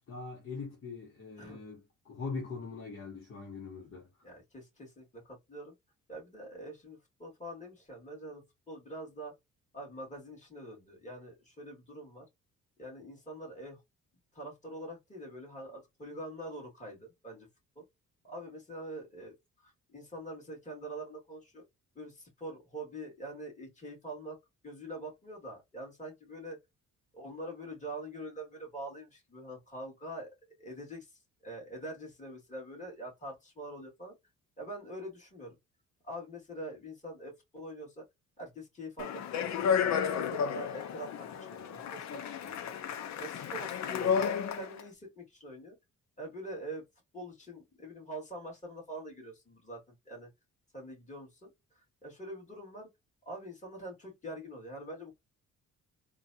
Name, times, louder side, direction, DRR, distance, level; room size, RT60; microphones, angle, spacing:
voice 1, 0.0-4.3, left 4 dB, 45° left, 1.1 m, -42 dB
voice 2, 4.2-5.7 6.1-9.3 9.7-12.3 12.8-13.8 14.3-17.5 17.8-17.9 18.2-21.6 21.9-24.4 24.6-26.6 27.1-30.3 30.6-34.1 34.6-35.5 36.0-38.0 38.4-42.7 43.2-45.8 46.2-46.8 47.1-50.3 50.7-52.9 53.2-55.2, right 1 dB, 25° left, 2.4 m, -44 dB
Speech, 39.0-44.8, left 7 dB, 65° left, 0.7 m, -32 dB
3.8 x 2.4 x 2.6 m
cardioid pair, 90°, 30 cm